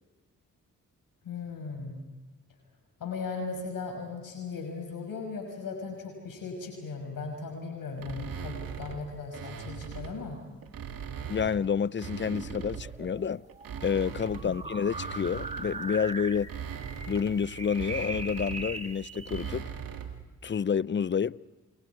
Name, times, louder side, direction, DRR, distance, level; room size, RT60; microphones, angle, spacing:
voice 1, 1.2-2.0 3.0-10.4 14.4-14.5, left 4 dB, 70° left, 6.0 m, -37 dB
sound 1, 8.0-10.2 10.6-13.0 13.5-20.2, right 7 dB, 70° right, 2.5 m, -40 dB
voice 2, 11.3-13.4 13.8-16.5 17.1-19.7 20.4-21.4, left 7 dB, 30° left, 0.6 m, -29 dB
sound 2, 12.1-19.5, right 2 dB, 20° right, 1.9 m, -41 dB
29.5 x 26.0 x 4.8 m
supercardioid pair, 45°, 35 cm